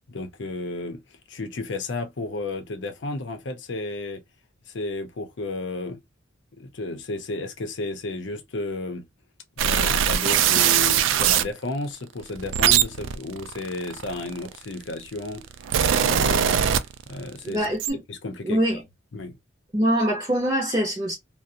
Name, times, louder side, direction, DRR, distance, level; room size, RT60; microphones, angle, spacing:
voice 1, 0.1-4.2 4.7-6.0 6.5-9.1 9.6-15.4 15.9-16.6 17.1-17.7 18.1-18.8 19.1-19.4, left 2 dB, 65° left, 0.6 m, -33 dB
sound 1, 9.6-11.5 12.2-14.6 15.3-17.3 17.6-17.9, right 9 dB, 80° right, 0.3 m, -21 dB
voice 2, 17.4-18.0 18.4-18.8 19.7-21.1, equal, 20° right, 0.6 m, -23 dB
2.4 x 2.1 x 2.6 m
head